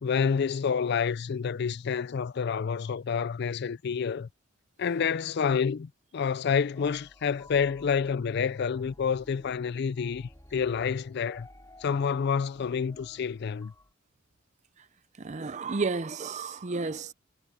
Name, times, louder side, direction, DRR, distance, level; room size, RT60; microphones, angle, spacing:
voice 1, 0.0-4.3 4.8-11.5 11.8-13.7, left 6 dB, 55° left, 0.4 m, -28 dB
sound 1, 6.7-13.9, left 1 dB, 15° left, 6.2 m, -54 dB
voice 2, 15.2-17.1, right 4 dB, 35° right, 0.5 m, -32 dB
head